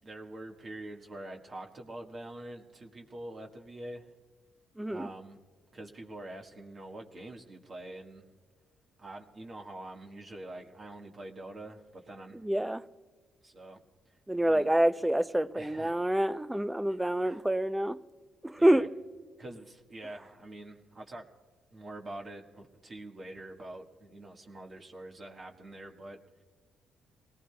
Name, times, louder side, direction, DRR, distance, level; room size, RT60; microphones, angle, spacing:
voice 1, 0.0-4.1 4.9-5.4 5.7-8.3 9.0-12.4 13.4-13.8 14.0-14.7 15.5-16.0 16.9-17.4 18.6-18.9 19.4-21.3 21.7-26.4, right 1 dB, 40° right, 1.6 m, -45 dB
voice 2, 4.8-5.1 12.4-12.8 14.3-18.0 18.4-18.9, right 1 dB, 10° right, 0.5 m, -27 dB
28.0 x 18.5 x 2.3 m
cardioid pair, 90°, 0 cm